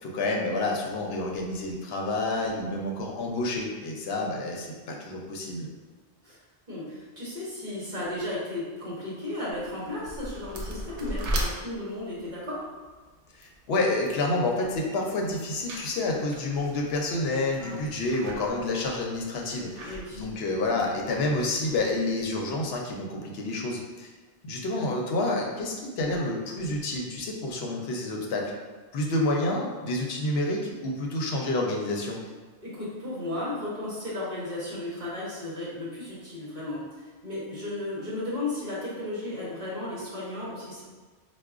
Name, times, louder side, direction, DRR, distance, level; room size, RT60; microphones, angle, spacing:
voice 1, 0.0-5.7 13.4-24.1 24.4-28.5 28.9-32.2, left 2 dB, 65° left, 0 dB, 0.8 m, -29 dB
voice 2, 6.7-12.7 17.6-17.8 19.8-20.2 32.6-36.8 37.2-40.8, left 2 dB, 45° right, -9 dB, 1.1 m, -34 dB
sound 1, 9.5-21.2, right 1 dB, 80° right, 0.9 m, -39 dB
4.6 x 2.3 x 2.4 m, 1.3 s
omnidirectional pair, 1.2 m